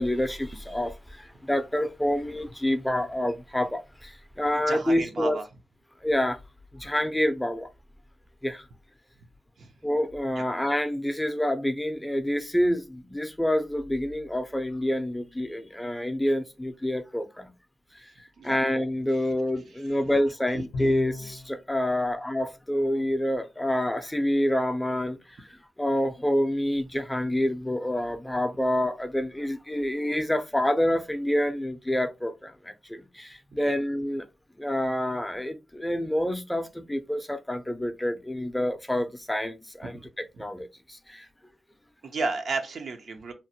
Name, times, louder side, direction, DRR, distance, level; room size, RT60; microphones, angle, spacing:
voice 1, 0.0-5.4 6.0-6.4 6.7-7.7 8.4-8.6 9.8-17.5 18.4-34.3 34.6-41.3, left 1 dB, 10° left, 0.4 m, -27 dB
voice 2, 4.5-5.4 9.6-9.7 18.4-18.6 20.5-20.6 33.7-33.8 40.4-40.5 42.0-43.3, right 3 dB, 80° right, 0.5 m, -32 dB
Bowed string instrument, 20.7-21.6, left 3 dB, 85° left, 0.5 m, -33 dB
2.8 x 2.1 x 2.7 m
cardioid pair, 60°, 0 cm